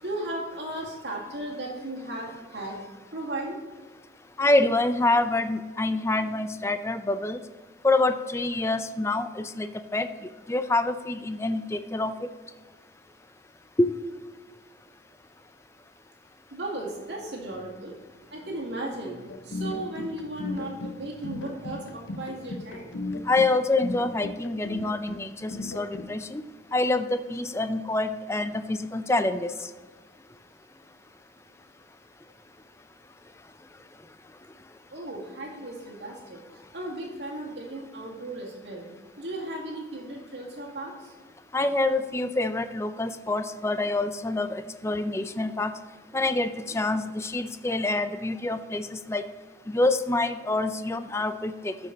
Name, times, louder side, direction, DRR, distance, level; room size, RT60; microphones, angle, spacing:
voice 1, 0.0-3.6 16.5-22.9 34.9-36.4 36.7-38.9 39.2-41.1, right 1 dB, 70° right, -2 dB, 2.1 m, -36 dB
voice 2, 4.4-7.4 7.8-12.3 13.8-13.9 23.2-26.4 26.7-29.7 41.5-45.7 46.1-49.2 49.7-51.8, left 2 dB, 15° left, 10 dB, 0.4 m, -26 dB
sound 1, 19.3-26.1, left 2 dB, 80° left, 0.7 m, -36 dB
13.0 x 5.3 x 4.1 m, 1.4 s
head